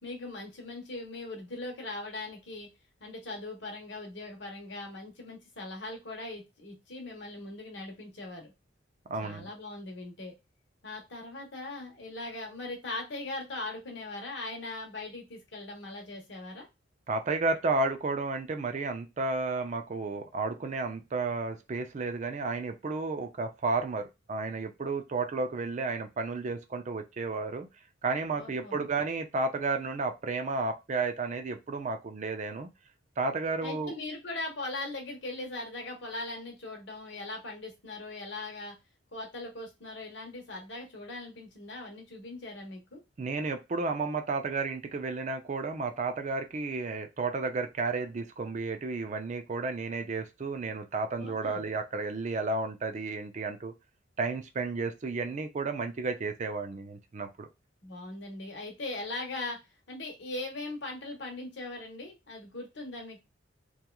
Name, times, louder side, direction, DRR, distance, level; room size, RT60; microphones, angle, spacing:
voice 1, 0.0-2.7 3.0-8.5 9.2-10.3 10.8-16.7 28.4-28.9 33.6-38.7 39.1-43.0 51.2-51.6 57.8-59.6 59.9-63.2, left 2 dB, 60° left, 2 dB, 1.0 m, -40 dB
voice 2, 9.1-9.5 17.1-27.7 28.0-32.7 33.2-33.9 43.2-53.7 54.2-57.5, right 3 dB, 35° right, 7 dB, 0.4 m, -32 dB
2.9 x 2.3 x 2.2 m, 0.23 s
head